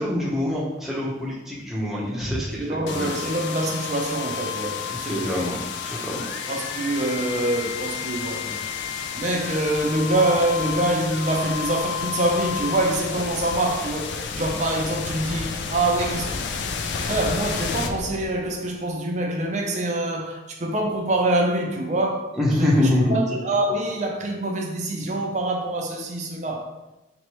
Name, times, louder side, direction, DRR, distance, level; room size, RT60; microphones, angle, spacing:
voice 1, 0.0-3.2 5.1-6.2 14.3-14.4 22.4-23.2, left 1 dB, ahead, 0.8 m, -25 dB
voice 2, 2.6-5.5 6.5-8.7 9.1-16.5 17.0-22.3 22.6-26.7, right 1 dB, 40° right, 0.5 m, -25 dB
sound 1, 2.9-18.7, left 6 dB, 65° left, 0.4 m, -31 dB
4.4 x 3.0 x 3.0 m
head